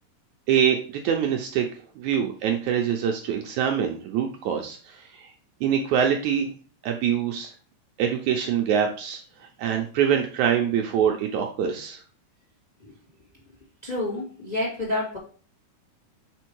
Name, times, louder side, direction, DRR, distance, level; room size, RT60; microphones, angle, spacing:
voice 1, 0.5-1.7 2.0-5.3 5.6-6.5 6.8-7.5 8.0-9.2 9.6-12.0, right 8 dB, 75° right, 3 dB, 1.9 m, -24 dB
voice 2, 13.8-15.2, left 2 dB, 20° left, -3 dB, 1.1 m, -29 dB
5.1 x 4.4 x 4.6 m, 0.40 s
omnidirectional pair, 3.9 m